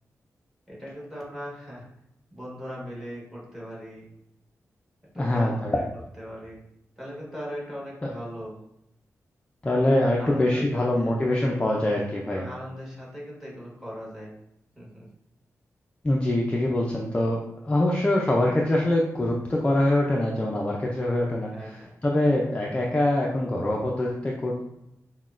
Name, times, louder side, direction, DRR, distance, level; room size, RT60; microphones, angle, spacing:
voice 1, 0.7-1.8 2.3-4.1 5.1-5.8 6.2-6.6 7.0-8.5 10.2-11.1 11.8-12.0 12.3-14.3 14.7-15.1 21.5-21.9, equal, 5° right, -5 dB, 1.3 m, -39 dB
voice 2, 5.2-5.8 8.0-8.1 9.6-12.4 16.0-21.7 22.0-24.6, left 1 dB, 20° left, -2 dB, 0.4 m, -24 dB
5.7 x 2.1 x 2.4 m, 0.84 s
wide cardioid pair, 135°, 6 cm